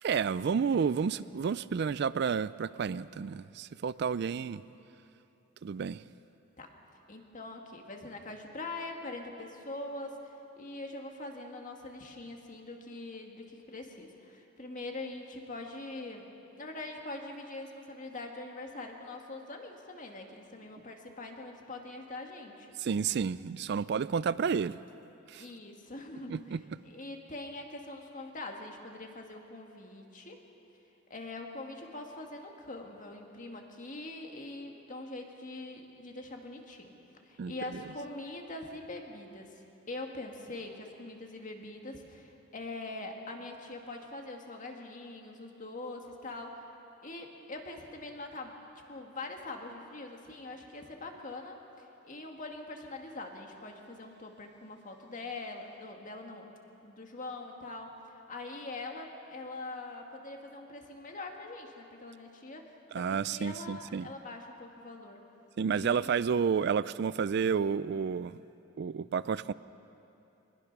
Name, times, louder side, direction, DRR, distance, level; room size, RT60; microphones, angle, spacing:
voice 1, 0.0-4.6 5.6-6.0 22.8-24.8 25.3-25.5 26.3-26.6 37.4-37.8 62.9-64.1 65.6-68.4 68.8-69.5, right 6 dB, 55° right, 17 dB, 0.4 m, -31 dB
voice 2, 7.1-10.2 10.6-16.3 16.6-22.8 25.4-26.4 26.8-30.4 31.1-36.9 37.3-39.5 39.9-46.7 47.0-56.5 56.8-65.2 65.7-66.1, left 2 dB, 40° left, 3 dB, 2.0 m, -43 dB
23.0 x 20.5 x 6.0 m, 2.8 s
head